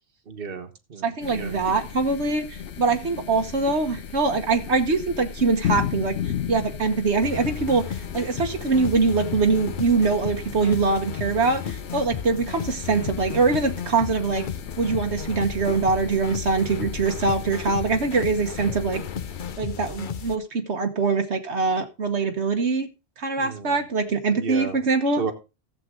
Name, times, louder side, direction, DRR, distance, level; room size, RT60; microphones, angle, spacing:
voice 1, 0.3-1.5 23.4-23.9 24.3-24.8 25.1-25.3, right 5 dB, 55° right, 8 dB, 1.5 m, -33 dB
voice 2, 1.0-6.1 6.5-14.4 14.8-19.0 19.6-22.9 23.2-25.2, right 4 dB, 75° right, 5 dB, 1.5 m, -23 dB
sound 1, 1.2-19.6, left 8 dB, 85° left, 1.2 m, -36 dB
sound 2, 7.2-20.4, left 8 dB, 50° left, 0.8 m, -34 dB
14.5 x 7.7 x 3.8 m, 0.29 s
omnidirectional pair, 1.1 m